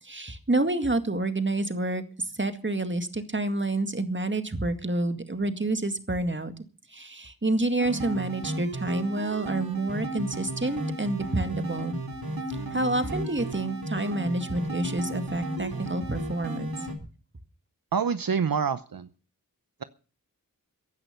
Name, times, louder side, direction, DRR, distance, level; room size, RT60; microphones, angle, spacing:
voice 1, 0.0-6.5 6.9-12.0 12.5-16.9, right 2 dB, 35° right, 9 dB, 2.0 m, -28 dB
sound 1, 7.8-16.9, right 1 dB, 85° right, 3.2 m, -34 dB
voice 2, 17.9-19.1, right 6 dB, 70° right, 12 dB, 0.9 m, -26 dB
16.0 x 10.5 x 6.7 m, 0.38 s
wide cardioid pair, 55°, 35 cm